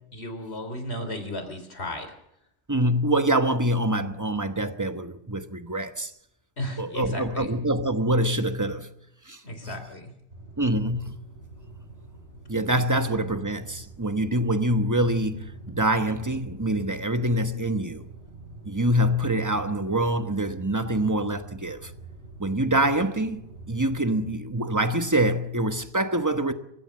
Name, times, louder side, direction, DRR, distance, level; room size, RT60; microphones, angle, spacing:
voice 1, 0.1-2.1 6.6-7.5 9.4-10.1, left 1 dB, 70° left, 3.9 m, -35 dB
voice 2, 2.7-6.1 6.8-8.9 9.3-9.8 10.6-11.2 12.5-18.0 18.6-21.9 22.4-23.4 23.7-26.5, right 1 dB, 15° right, 1.2 m, -25 dB
sound 1, 10.3-24.3, right 2 dB, 80° right, 8.2 m, -44 dB
25.5 x 15.5 x 7.7 m
omnidirectional pair, 1.1 m